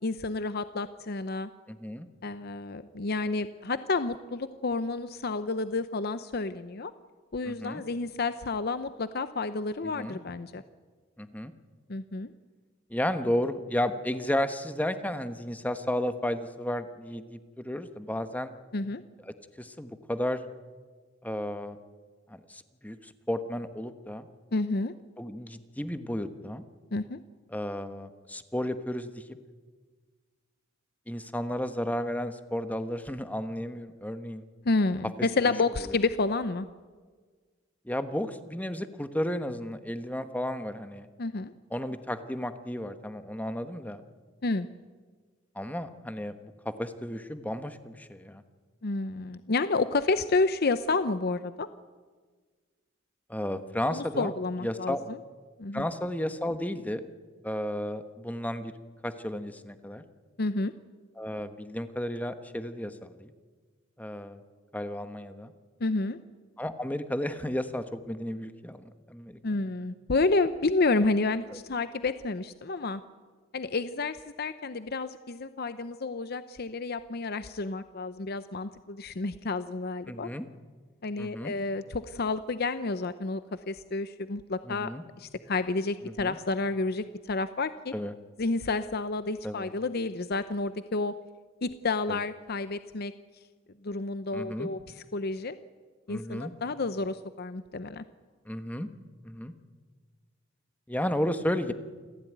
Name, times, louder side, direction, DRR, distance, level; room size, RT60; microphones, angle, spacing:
voice 1, 0.0-1.5 2.2-6.9 7.3-10.6 11.9-12.3 18.7-19.0 24.5-24.9 26.9-27.2 34.6-36.7 41.2-41.5 44.4-44.7 48.8-51.7 53.9-55.2 55.6-55.9 60.4-60.7 65.8-66.2 69.4-73.0 73.5-80.3 81.0-83.4 83.7-84.9 85.2-87.9 88.4-91.1 91.6-93.1 93.8-94.8 95.1-95.6 96.1-98.0, left 3 dB, 50° left, 12 dB, 0.7 m, -30 dB
voice 2, 1.7-2.1 7.5-7.8 9.9-10.2 11.2-11.5 12.9-18.5 19.6-20.4 21.2-21.8 22.3-24.3 25.2-26.6 27.5-29.2 31.1-34.4 37.8-41.1 41.7-44.0 45.5-48.4 53.3-54.3 54.6-55.0 55.7-57.0 57.4-58.7 59.0-60.0 61.2-63.3 64.0-64.4 64.7-65.5 66.6-69.6 80.1-80.5 81.2-81.5 84.7-85.0 86.0-86.4 87.9-88.1 89.4-89.7 92.1-92.2 94.3-94.7 96.1-96.5 98.5-98.9 99.2-99.5 100.9-101.7, left 1 dB, 10° left, 9 dB, 1.2 m, -33 dB
28.0 x 15.0 x 9.4 m, 1.5 s
head